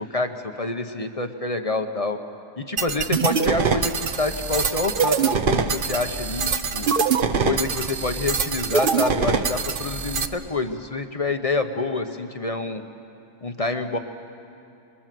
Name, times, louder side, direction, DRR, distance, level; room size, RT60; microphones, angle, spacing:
voice 1, 0.0-2.2 2.6-6.9 7.4-12.8 13.4-14.0, left 3 dB, 30° left, 7 dB, 0.7 m, -27 dB
sound 1, 2.8-10.3, right 5 dB, 45° right, 0.8 m, -24 dB
27.0 x 21.5 x 7.6 m, 2.8 s
omnidirectional pair, 1.7 m